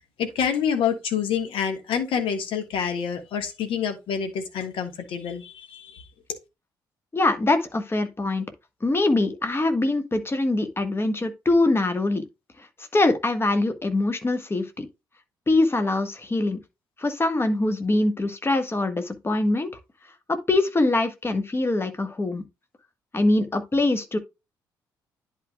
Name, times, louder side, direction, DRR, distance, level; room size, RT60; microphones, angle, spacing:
voice 1, 0.2-6.0 6.3-6.4, left 7 dB, 60° left, 1.5 m, -27 dB
voice 2, 7.1-8.5 8.8-12.2 12.6-12.7 12.9-14.9 15.5-16.6 17.0-19.7 20.3-22.4 23.1-24.2, left 2 dB, 25° left, 1.4 m, -23 dB
10.5 x 4.7 x 2.3 m
figure-of-eight pair, 45°, 10 cm